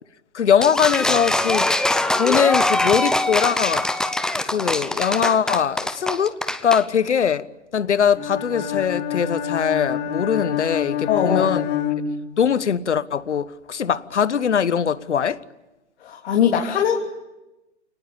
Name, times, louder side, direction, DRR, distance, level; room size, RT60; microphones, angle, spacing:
voice 1, 0.3-1.7 2.2-3.9 4.5-6.3 6.6-7.5 7.7-11.6 12.4-15.4, left 7 dB, 75° left, 1.3 m, -21 dB
sound 1, 0.6-6.8, left 1 dB, ahead, 0.8 m, -22 dB
Bowed string instrument, 8.1-12.7, left 9 dB, 25° left, 3.9 m, -27 dB
voice 2, 11.1-11.5 16.0-16.9, left 8 dB, 60° left, 3.5 m, -20 dB
28.5 x 19.5 x 8.6 m
figure-of-eight pair, 125°, 35 cm